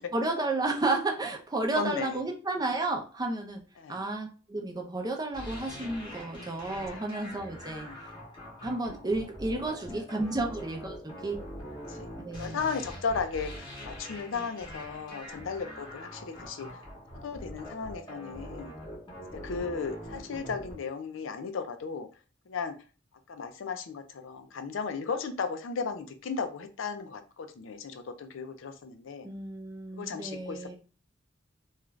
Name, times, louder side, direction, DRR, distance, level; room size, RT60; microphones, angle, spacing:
voice 1, 0.0-3.6 3.9-7.9 8.6-11.4 12.2-12.6 29.2-30.8, right 2 dB, 20° right, 2 dB, 0.5 m, -32 dB
voice 2, 1.7-2.2 3.8-4.0 6.7-7.1 7.7-8.0 11.9-16.7 17.2-18.7 19.4-22.1 22.5-22.7 23.3-29.3 29.9-30.8, left 5 dB, 80° left, 7 dB, 0.5 m, -35 dB
sound 1, 5.3-20.7, equal, 25° left, 0.9 m, -43 dB
2.4 x 2.3 x 3.1 m, 0.36 s
head